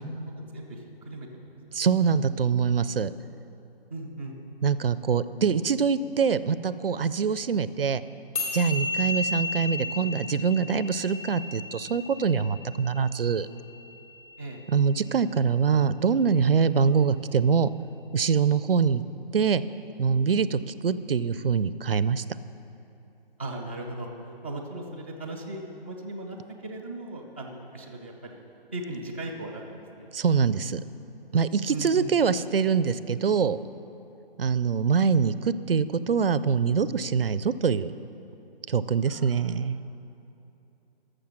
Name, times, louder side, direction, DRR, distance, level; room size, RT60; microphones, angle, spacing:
voice 1, 0.0-1.9 3.9-4.4 14.4-14.6 23.4-24.1 24.4-26.4 26.6-28.4 28.7-30.1 31.7-32.1 39.1-39.5, right 1 dB, 15° left, -3 dB, 0.3 m, -38 dB
voice 2, 1.7-3.1 4.6-8.0 8.5-13.5 14.7-17.7 18.1-19.0 19.3-19.6 20.0-22.2 30.1-30.8 31.3-33.6 34.4-37.9 38.7-39.8, right 6 dB, 70° right, 16 dB, 0.5 m, -24 dB
sound 1, 8.4-14.9, left 3 dB, 50° left, 2.9 m, -34 dB
13.0 x 6.6 x 6.2 m, 2.8 s
figure-of-eight pair, 135°, 30 cm